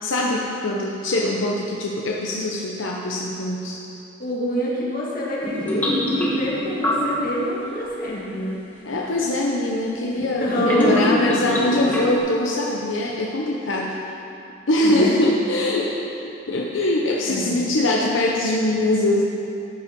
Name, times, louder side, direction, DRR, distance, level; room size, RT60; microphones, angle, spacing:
voice 1, 0.0-3.8 8.8-14.0 14.7-19.2, left 1 dB, 80° left, -2 dB, 0.8 m, -22 dB
voice 2, 4.2-8.6 10.4-11.3 14.8-15.2 16.7-16.8 17.3-17.7, equal, 50° left, -6 dB, 2.1 m, -25 dB
sound 1, 5.4-7.3 9.1-9.2 10.5-12.2, left 1 dB, 10° left, 1.5 m, -25 dB
12.5 x 5.5 x 5.3 m, 2.7 s
head